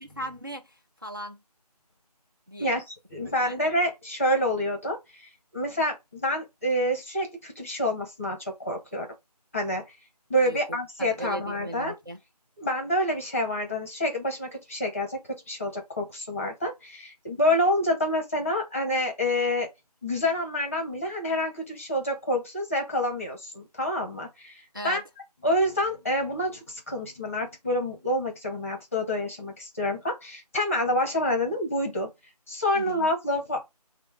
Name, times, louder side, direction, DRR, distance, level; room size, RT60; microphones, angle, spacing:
voice 1, 0.0-1.4 2.5-2.8 3.2-3.6 10.4-10.6 11.0-12.2 24.7-25.0 32.7-33.1, equal, 35° right, 0.4 m, -38 dB
voice 2, 3.1-9.1 9.5-9.8 10.3-11.9 12.6-19.7 20.0-25.0 25.4-32.1 32.5-33.6, left 1 dB, 20° left, 0.9 m, -27 dB
5.3 x 2.1 x 4.3 m
figure-of-eight pair, 170°, 21 cm